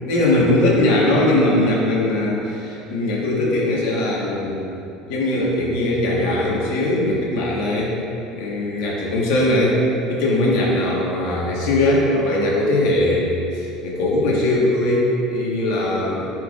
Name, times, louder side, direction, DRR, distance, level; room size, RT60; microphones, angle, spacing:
voice 1, 0.0-4.6 5.1-7.9 8.3-9.8 10.1-16.3, left 1 dB, 75° left, -4 dB, 1.4 m, -20 dB
9.8 x 4.6 x 2.5 m, 2.9 s
cardioid pair, 160°, 0 cm